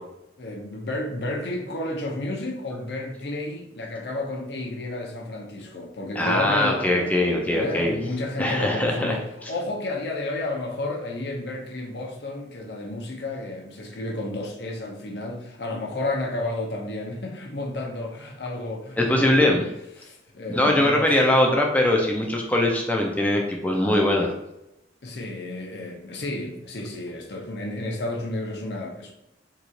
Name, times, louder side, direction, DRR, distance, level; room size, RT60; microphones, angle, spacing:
voice 1, 0.4-19.6 20.0-21.4 25.0-29.1, left 2 dB, 65° left, 0 dB, 0.7 m, -32 dB
voice 2, 6.2-8.0 8.4-9.2 19.0-19.6 20.5-24.3, left 1 dB, 10° left, 0 dB, 0.4 m, -21 dB
2.9 x 2.4 x 3.8 m, 0.89 s
head